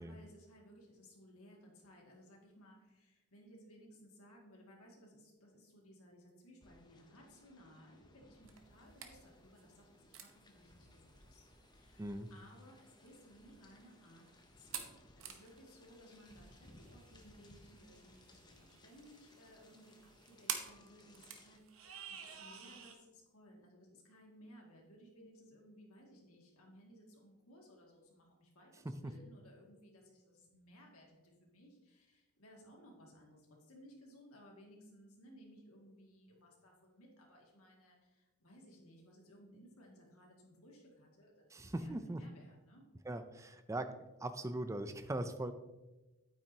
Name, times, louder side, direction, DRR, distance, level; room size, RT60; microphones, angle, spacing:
voice 1, 0.0-14.2 14.6-42.8, equal, 80° left, -1 dB, 2.2 m, -60 dB
sound 1, 6.6-21.6, left 1 dB, 20° left, 0.7 m, -63 dB
sound 2, 8.4-23.0, right 8 dB, 65° right, 0.9 m, -50 dB
voice 2, 12.0-12.3 28.8-29.1 41.5-42.2 43.1-43.9 44.2-45.5, right 1 dB, 15° right, 10 dB, 0.4 m, -40 dB
8.9 x 8.9 x 2.8 m, 1.1 s
head